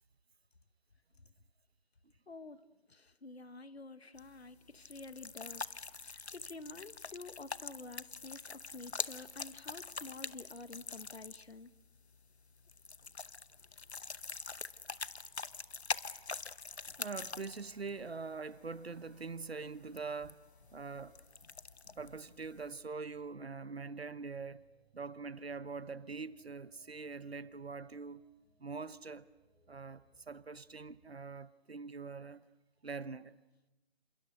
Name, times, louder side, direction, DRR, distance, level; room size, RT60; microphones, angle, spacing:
voice 1, 2.3-11.7, left 3 dB, 75° left, 1.5 m, -50 dB
sound 1, 4.2-22.7, left 4 dB, 90° left, 0.9 m, -45 dB
Cheering / Crowd, 16.3-23.1, right 3 dB, 50° right, 3.7 m, -71 dB
voice 2, 17.0-20.4 20.7-21.2 22.0-24.6 24.9-28.2 28.6-29.3 29.7-32.4 32.8-33.4, right 4 dB, 70° right, 1.2 m, -43 dB
sound 2, 21.2-31.1, right 2 dB, ahead, 4.9 m, -72 dB
28.5 x 27.0 x 6.5 m
figure-of-eight pair, 165°, 32 cm